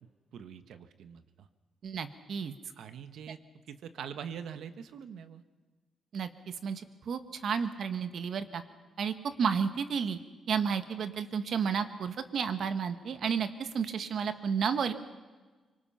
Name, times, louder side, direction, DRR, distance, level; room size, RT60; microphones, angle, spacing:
voice 1, 0.3-1.5 2.8-3.4 3.7-5.4, right 8 dB, 80° right, 10 dB, 1.4 m, -43 dB
voice 2, 1.8-2.5 6.1-6.3 6.6-8.6 9.0-10.2 10.5-14.9, right 6 dB, 65° right, 9 dB, 1.7 m, -32 dB
25.0 x 25.0 x 5.8 m, 1.3 s
cardioid pair, 105°, 0 cm